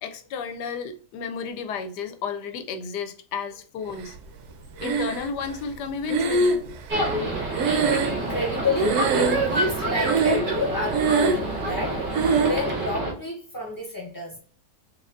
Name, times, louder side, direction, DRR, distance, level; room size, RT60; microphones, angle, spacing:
voice 1, 0.0-4.2 4.8-6.6, left 5 dB, 80° left, 1.2 m, -32 dB
Breathing, 4.8-5.5 6.1-8.6 8.8-9.6 10.0-10.6 10.9-11.5 12.1-12.6, right 4 dB, 75° right, 1.1 m, -23 dB
sound 1, 6.9-13.1, right 1 dB, 35° right, 1.3 m, -27 dB
voice 2, 8.1-12.1 12.4-14.4, left 2 dB, 15° left, 1.2 m, -29 dB
4.1 x 2.9 x 2.5 m
omnidirectional pair, 1.8 m